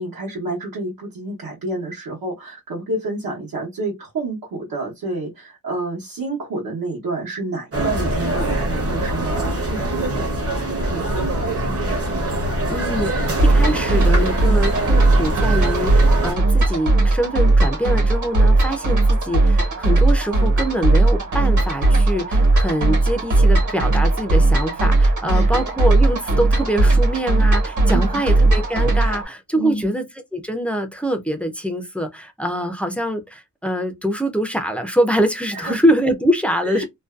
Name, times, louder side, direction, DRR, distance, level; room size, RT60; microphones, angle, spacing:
voice 1, 0.0-10.3 10.9-12.0 25.3-25.6 27.9-28.3 29.0-29.1 29.6-29.9 35.5-35.8 36.6-36.8, right 2 dB, 80° right, 0.9 m, -29 dB
sound 1, 7.7-16.3, right 1 dB, 40° right, 0.8 m, -23 dB
voice 2, 12.7-30.0 30.3-36.8, equal, 5° left, 0.3 m, -24 dB
sound 2, 13.4-29.2, right 2 dB, 60° right, 1.1 m, -17 dB
2.5 x 2.2 x 2.3 m
wide cardioid pair, 170°, 35 cm